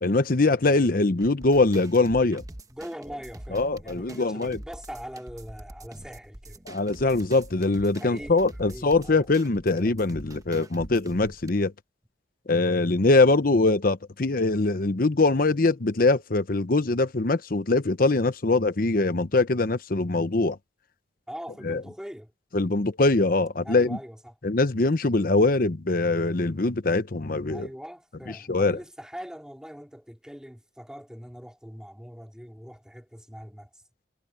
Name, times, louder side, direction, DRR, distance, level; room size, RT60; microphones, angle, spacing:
voice 1, 0.0-2.4 3.5-4.6 6.7-11.7 12.5-20.6 21.6-21.8 22.5-24.0 24.4-27.7 28.5-28.8, left 3 dB, 55° left, 0.9 m, -23 dB
sound 1, 1.2-11.5, right 1 dB, 20° right, 1.0 m, -45 dB
voice 2, 2.7-6.6 8.0-8.3 8.6-9.3 21.3-22.3 23.6-24.4 27.5-33.8, equal, 5° right, 4.3 m, -42 dB
head